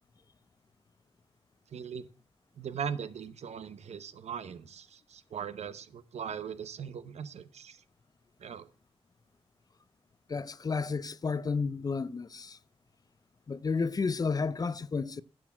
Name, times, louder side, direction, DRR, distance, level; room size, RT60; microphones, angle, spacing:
voice 1, 1.7-2.1 2.6-7.8 8.4-8.7, right 7 dB, 85° right, 0.8 m, -39 dB
voice 2, 10.3-12.6 13.5-15.2, left 4 dB, 35° left, 0.4 m, -31 dB
10.5 x 6.2 x 6.0 m
wide cardioid pair, 95°, 11 cm